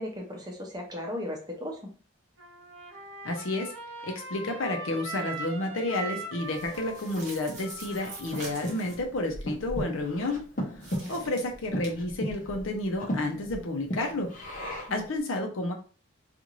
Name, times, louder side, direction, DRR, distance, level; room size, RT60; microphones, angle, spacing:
voice 1, 0.0-1.9 11.0-11.4 14.9-15.1, left 1 dB, 20° right, 1 dB, 0.7 m, -37 dB
Trumpet, 2.4-9.0, right 2 dB, 75° right, 0.8 m, -41 dB
voice 2, 3.2-3.7 4.0-10.4 10.9-14.3 14.9-15.7, left 2 dB, 80° left, 3 dB, 0.7 m, -31 dB
sound 1, 6.4-9.1 10.8-11.9, right 3 dB, 40° right, 1.0 m, -45 dB
Breathing, 6.6-15.1, equal, 40° left, 0.7 m, -37 dB
2.5 x 2.5 x 3.0 m, 0.38 s
head